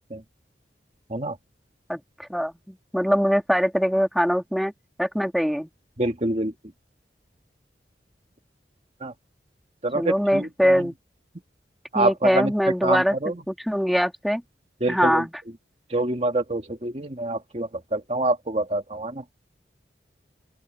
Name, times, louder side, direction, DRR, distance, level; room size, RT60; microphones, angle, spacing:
voice 1, 1.9-4.7 5.0-5.7 9.9-10.9 11.9-14.4 14.9-15.3, equal, ahead, 2.4 m, -23 dB
voice 2, 6.0-6.5 9.0-9.1 9.8-10.8 11.9-12.5 12.8-13.3 14.8-15.2 15.9-19.1, right 2 dB, 35° right, 1.9 m, -26 dB
open air
head